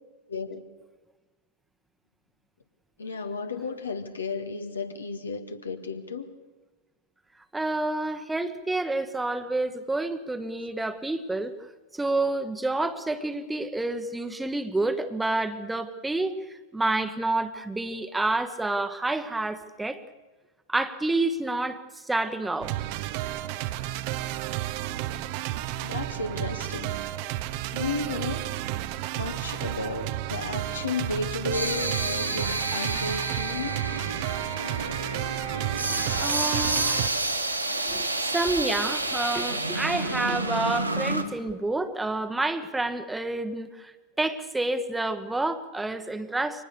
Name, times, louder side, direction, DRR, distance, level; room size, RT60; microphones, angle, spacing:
voice 1, 0.3-0.6 3.0-6.3 25.8-27.0 27.7-28.5 29.1-33.8, left 4 dB, 75° left, 7 dB, 1.8 m, -33 dB
voice 2, 7.5-11.5 11.9-20.0 20.7-22.7 36.1-36.9 37.9-43.9 44.2-46.6, right 2 dB, 5° right, 10 dB, 1.2 m, -29 dB
sound 1, 22.6-37.1, right 14 dB, 45° right, 0.9 m, -32 dB
sound 2, 30.7-41.2, right 2 dB, 85° right, 1.7 m, -30 dB
24.0 x 19.5 x 6.8 m, 1.2 s
figure-of-eight pair, 90°, 0 cm